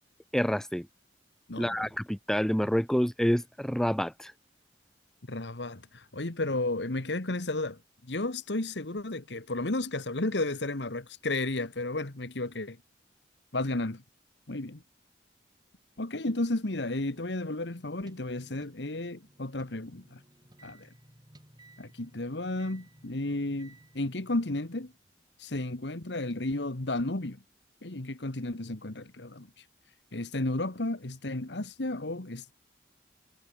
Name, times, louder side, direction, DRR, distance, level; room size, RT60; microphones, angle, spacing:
voice 1, 0.3-0.9 1.6-4.3, equal, 5° left, 0.6 m, -28 dB
voice 2, 1.5-1.8 5.3-7.8 8.1-12.8 13.5-14.0 14.5-14.8 16.0-20.2 20.6-20.9 21.8-24.9 25.4-27.4 27.8-29.5 30.1-32.5, left 2 dB, 80° left, 1.7 m, -33 dB
sound 1, 17.1-25.2 26.3-26.4, right 1 dB, 25° right, 7.8 m, -58 dB
head